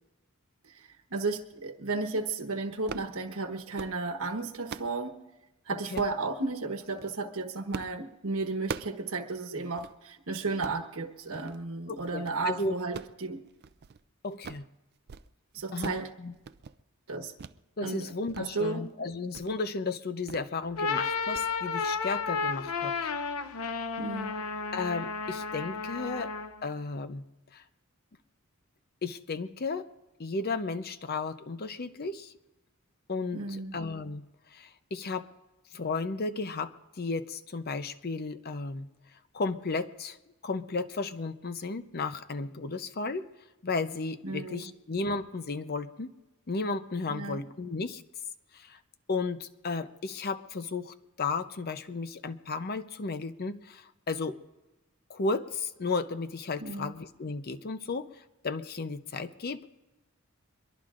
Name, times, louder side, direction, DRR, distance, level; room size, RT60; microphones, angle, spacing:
voice 1, 0.6-5.2 5.7-13.4 15.5-16.1 17.1-17.3 17.8-18.9 24.0-24.3 33.3-33.7 44.2-44.7 47.1-47.4 56.6-56.9, right 3 dB, 75° right, 6 dB, 1.2 m, -34 dB
sound 1, 2.7-3.1 3.6-4.0 4.4-5.0 5.9-6.2 6.8-7.1 7.7-8.0 8.3-9.0 9.4-9.5 9.8-9.9 10.4-10.8 11.3-11.6 12.0-12.4 12.8-14.0 14.3-14.7 15.0-15.3 15.5-16.1 16.3-16.8 17.4-17.6 18.0-18.4 18.8-18.9 19.3-19.5 20.3-20.5 20.8-21.0 21.3-21.5, right 5 dB, 50° right, 0.4 m, -42 dB
voice 2, 11.9-12.8 14.2-14.6 15.7-15.9 16.2-16.3 17.8-22.9 24.7-26.3 26.6-27.2 27.5-27.6 29.0-29.9 30.2-32.3 33.1-35.3 35.7-38.9 39.3-40.2 40.4-43.3 43.6-46.1 46.5-48.0 48.5-48.8 49.1-54.4 55.1-59.7, left 3 dB, 45° left, 11 dB, 0.7 m, -34 dB
sound 2, 20.6-26.6, left 5 dB, 90° left, 0.8 m, -32 dB
24.0 x 22.5 x 2.5 m, 1.0 s
head